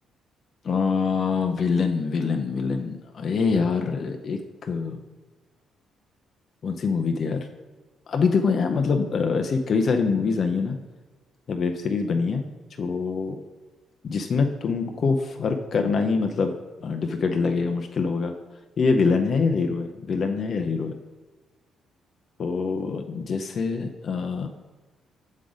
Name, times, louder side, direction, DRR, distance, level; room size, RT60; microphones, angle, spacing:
voice 1, 0.6-5.0 6.6-7.5 8.1-10.8 11.5-12.5 12.8-13.4 14.0-16.5 16.8-18.4 18.8-21.0 22.4-24.5, left 4 dB, 50° left, 5 dB, 0.5 m, -24 dB
7.3 x 3.9 x 4.9 m, 1.3 s
cardioid pair, 90°, 0 cm